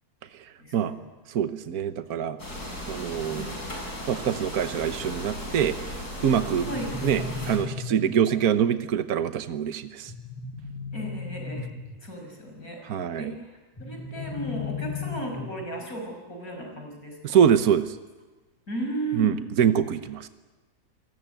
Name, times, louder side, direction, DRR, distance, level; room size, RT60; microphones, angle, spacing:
voice 1, 0.6-1.1 3.4-3.5 6.7-6.9 10.9-11.7 12.0-12.8 13.2-17.4 18.7-19.3, right 1 dB, 70° left, 3 dB, 6.3 m, -35 dB
voice 2, 1.3-2.4 2.9-3.5 4.1-5.8 6.2-6.7 7.0-10.1 12.8-13.4 17.2-18.0 19.1-20.3, right 8 dB, 75° right, 10 dB, 1.5 m, -24 dB
sound 1, 2.4-7.6, equal, 85° left, 6.9 m, -36 dB
sound 2, 6.4-8.4 10.1-12.1 13.8-15.8, left 4 dB, 15° left, 1.5 m, -36 dB
28.0 x 19.5 x 9.1 m, 1.2 s
omnidirectional pair, 1.6 m